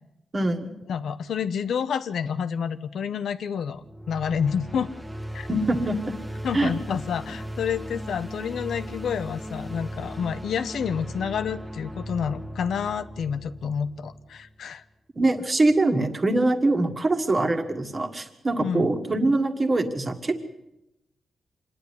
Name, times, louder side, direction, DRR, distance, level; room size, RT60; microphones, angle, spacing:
voice 1, 0.3-0.7 5.5-6.1 6.5-6.7 15.2-20.4, right 2 dB, 25° right, 5 dB, 1.8 m, -23 dB
voice 2, 0.9-4.9 5.3-5.5 6.4-14.8 18.6-19.0, left 7 dB, 90° left, 11 dB, 0.9 m, -29 dB
sound 1, 3.7-14.7, equal, 10° right, 1.6 m, -37 dB
26.0 x 10.5 x 9.6 m, 0.89 s
wide cardioid pair, 150°, 0 cm